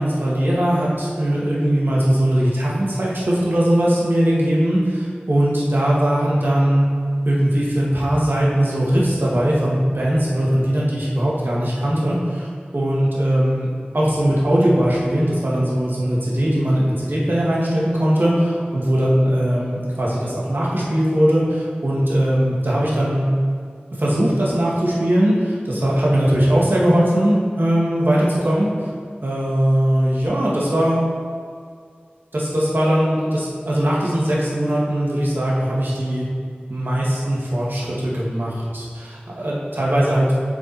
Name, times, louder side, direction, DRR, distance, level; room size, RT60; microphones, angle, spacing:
voice 1, 0.0-6.9 7.2-12.5 12.7-13.7 13.9-23.3 24.0-28.7 29.2-31.0 32.3-36.2 36.7-40.4, right 1 dB, 70° right, -6 dB, 2.1 m, -20 dB
7.1 x 6.0 x 4.3 m, 2.2 s
wide cardioid pair, 50°, 4 cm